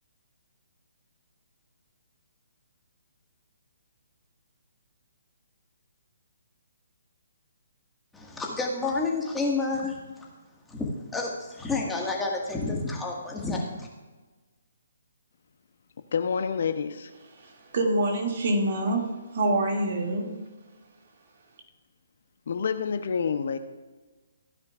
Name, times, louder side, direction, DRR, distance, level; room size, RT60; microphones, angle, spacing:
voice 1, 8.1-10.2 10.7-13.9, left 3 dB, 5° left, -1 dB, 1.7 m, -30 dB
voice 2, 16.1-17.1 22.5-23.6, left 6 dB, 60° left, 10 dB, 0.7 m, -28 dB
voice 3, 17.4-20.3, right 1 dB, 55° right, 1 dB, 2.3 m, -26 dB
15.5 x 9.5 x 2.4 m, 1.3 s
figure-of-eight pair, 140°, 0 cm